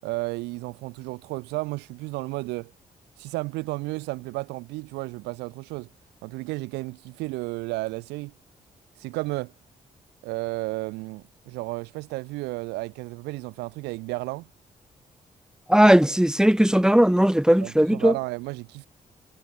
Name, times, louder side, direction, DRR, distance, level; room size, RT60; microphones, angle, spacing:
voice 1, 0.0-2.7 3.2-5.9 6.2-8.3 9.0-9.5 10.2-14.5 17.6-18.9, right 22 dB, 90° right, 5.8 m, -33 dB
voice 2, 15.7-18.1, equal, 5° right, 3.6 m, -18 dB
hypercardioid pair, 45°, 17 cm